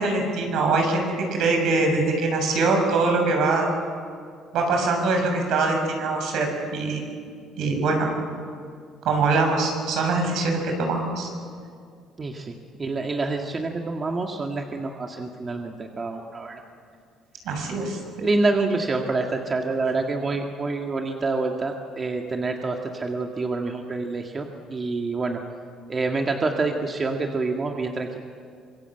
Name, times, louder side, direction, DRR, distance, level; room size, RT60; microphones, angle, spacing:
voice 1, 0.0-3.7 4.5-7.1 7.6-8.1 9.0-11.3 17.4-18.0, right 3 dB, 70° right, 3 dB, 6.6 m, -23 dB
voice 2, 12.2-12.5 12.8-16.6 18.2-25.4 25.9-28.2, right 3 dB, 30° right, 2 dB, 1.8 m, -27 dB
25.5 x 23.0 x 7.9 m, 2.2 s
cardioid pair, 115°, 0 cm